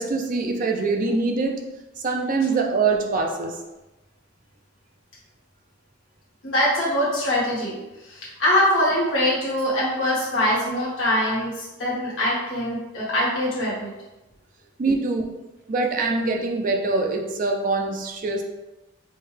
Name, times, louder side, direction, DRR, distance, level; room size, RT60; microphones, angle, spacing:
voice 1, 0.0-1.6 2.0-3.6 14.8-15.2 15.7-18.4, right 3 dB, 40° right, 2 dB, 0.4 m, -24 dB
voice 2, 6.4-13.9, left 1 dB, 65° left, -8 dB, 1.5 m, -23 dB
4.5 x 2.2 x 3.2 m, 1.0 s
head